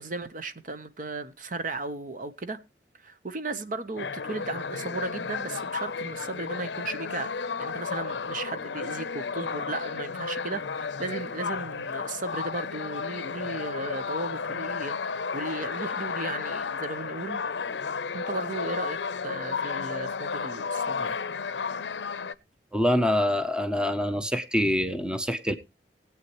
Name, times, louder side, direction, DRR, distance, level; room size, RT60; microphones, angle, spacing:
voice 1, 0.0-2.6 3.0-17.4 18.1-19.0 19.2-21.7, right 2 dB, 50° right, 0.9 m, -36 dB
sound 1, 4.0-22.3, left 5 dB, 85° left, 0.6 m, -33 dB
voice 2, 22.7-25.5, left 1 dB, 5° right, 0.7 m, -25 dB
19.5 x 8.4 x 3.0 m
head